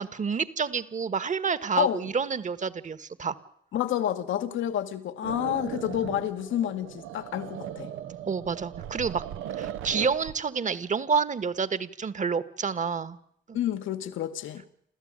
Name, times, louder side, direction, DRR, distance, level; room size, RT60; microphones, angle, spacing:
voice 1, 0.0-3.4 8.3-9.2 9.6-13.2 13.5-13.6, right 5 dB, 40° right, 1.5 m, -29 dB
voice 2, 3.7-7.9 13.5-14.6, left 11 dB, 75° left, 1.6 m, -29 dB
sound 1, 5.2-10.4, right 11 dB, 90° right, 1.0 m, -38 dB
28.5 x 14.0 x 8.9 m
cardioid pair, 90°, 20 cm